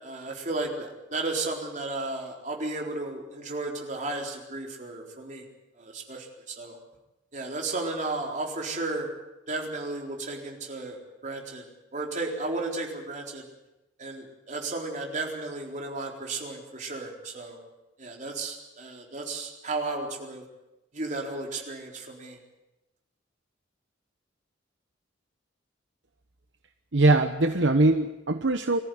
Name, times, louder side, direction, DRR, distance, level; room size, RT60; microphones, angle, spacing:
voice 1, 0.0-5.5 5.8-6.8 7.3-9.1 9.5-11.6 11.9-13.4 14.0-17.6 18.0-20.4 20.9-22.4, right 2 dB, 40° right, 1 dB, 4.1 m, -34 dB
voice 2, 26.9-28.8, right 2 dB, 70° right, 7 dB, 1.0 m, -22 dB
23.5 x 14.5 x 9.5 m, 0.98 s
head